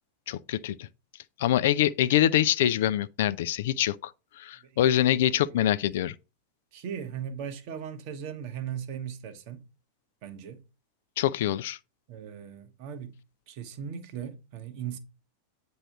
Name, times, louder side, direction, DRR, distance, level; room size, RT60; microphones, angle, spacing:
voice 1, 0.3-0.9 1.4-4.1 4.4-6.1 11.2-11.8, left 12 dB, 55° left, 0.4 m, -25 dB
voice 2, 6.7-9.6 10.2-10.6 12.1-13.1 13.5-15.0, right 8 dB, 45° right, 1.2 m, -38 dB
8.8 x 3.1 x 6.1 m
figure-of-eight pair, 90°, 0 cm